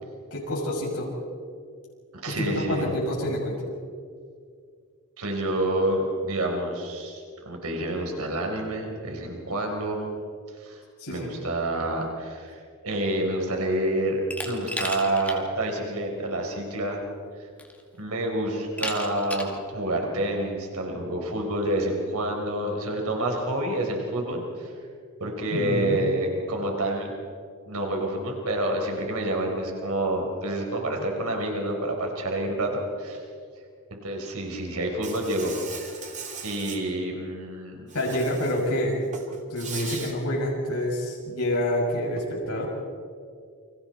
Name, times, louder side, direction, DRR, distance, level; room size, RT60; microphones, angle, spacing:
voice 1, 0.3-1.1 2.3-3.6 11.0-11.3 25.5-26.1 37.9-39.0 39.5-42.7, left 1 dB, 80° left, -4 dB, 6.4 m, -27 dB
voice 2, 2.2-2.9 5.2-10.1 10.6-10.8 11.1-12.5 12.8-17.0 18.0-24.7 25.2-27.1 27.7-32.7 33.0-33.2 33.9-35.5 36.0-36.1 36.4-37.8, right 1 dB, 75° right, 2 dB, 4.4 m, -28 dB
Glass, 14.3-15.4 15.8-15.9 17.0-17.1 17.6-18.0 18.8-19.6, left 1 dB, 5° left, 2.2 m, -34 dB
Insect, 35.0-36.8 37.9-38.7 39.0-40.1, right 5 dB, 35° right, 2.8 m, -39 dB
29.5 x 25.5 x 4.4 m, 2.2 s
head